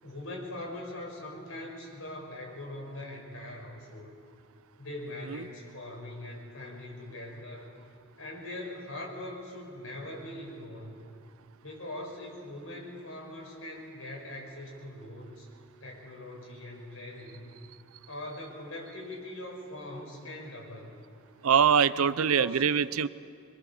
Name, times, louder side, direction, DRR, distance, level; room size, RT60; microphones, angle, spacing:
voice 1, 0.0-4.1 4.8-7.7 8.2-11.0 11.6-15.5 15.8-17.5 18.1-20.9 21.9-22.6, left 1 dB, 75° left, -1 dB, 5.8 m, -41 dB
voice 2, 21.4-23.1, right 7 dB, 85° right, 17 dB, 0.6 m, -23 dB
25.0 x 22.5 x 7.3 m, 2.4 s
head